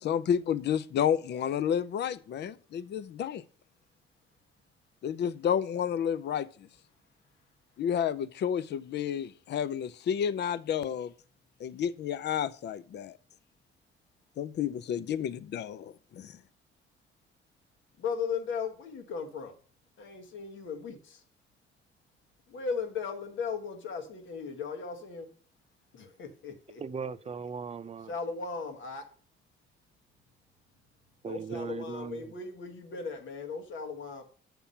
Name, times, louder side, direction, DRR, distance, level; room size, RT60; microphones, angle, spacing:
voice 1, 0.0-3.4 5.0-6.7 7.8-11.1 11.6-13.2 14.4-16.4, left 8 dB, 60° left, 0.6 m, -31 dB
voice 2, 18.0-19.5 20.0-21.2 22.5-25.3 25.9-26.8 28.1-29.0 31.2-34.2, left 5 dB, 75° left, 1.5 m, -37 dB
voice 3, 26.8-28.1 31.2-32.3, right 6 dB, 30° right, 0.6 m, -38 dB
6.9 x 6.0 x 5.6 m
cardioid pair, 90°, 20 cm